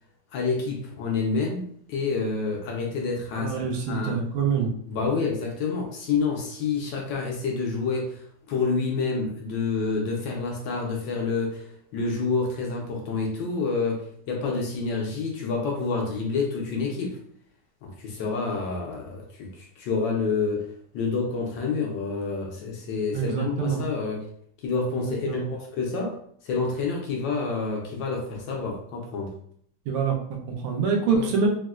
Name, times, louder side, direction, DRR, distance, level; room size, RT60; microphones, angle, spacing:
voice 1, 0.3-4.2 4.9-17.2 17.8-20.7 20.9-24.3 24.6-26.2 26.4-29.3 31.1-31.3, left 4 dB, 75° left, 0 dB, 1.1 m, -28 dB
voice 2, 3.3-4.7 23.1-23.8 25.3-25.5 29.9-31.5, right 5 dB, 80° right, -1 dB, 1.5 m, -25 dB
4.1 x 2.1 x 2.3 m, 0.65 s
omnidirectional pair, 2.4 m